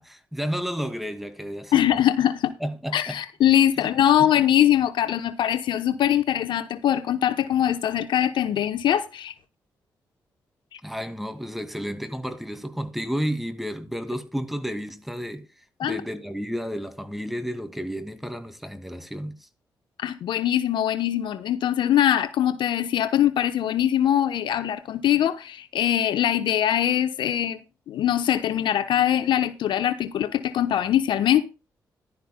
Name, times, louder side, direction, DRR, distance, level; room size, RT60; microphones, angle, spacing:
voice 1, 0.0-1.8 2.6-3.2 3.8-3.9 10.8-15.4 15.8-19.5, equal, ahead, 2.2 m, -32 dB
voice 2, 1.7-2.5 2.9-9.3 15.8-16.0 20.0-27.6 27.9-31.4, left 11 dB, 75° left, 0.9 m, -22 dB
14.5 x 12.0 x 2.2 m
supercardioid pair, 45°, 8 cm